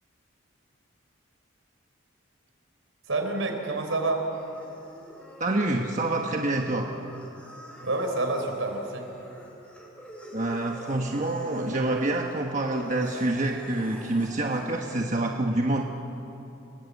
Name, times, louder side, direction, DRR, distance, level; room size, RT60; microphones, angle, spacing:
voice 1, 3.1-4.3 7.8-9.1, right 2 dB, 75° right, 4 dB, 4.1 m, -28 dB
sound 1, 4.3-15.0, equal, 5° left, 3.9 m, -46 dB
voice 2, 5.4-6.9 10.3-15.8, right 2 dB, 35° right, 1 dB, 1.3 m, -27 dB
29.0 x 20.0 x 8.4 m, 2.9 s
head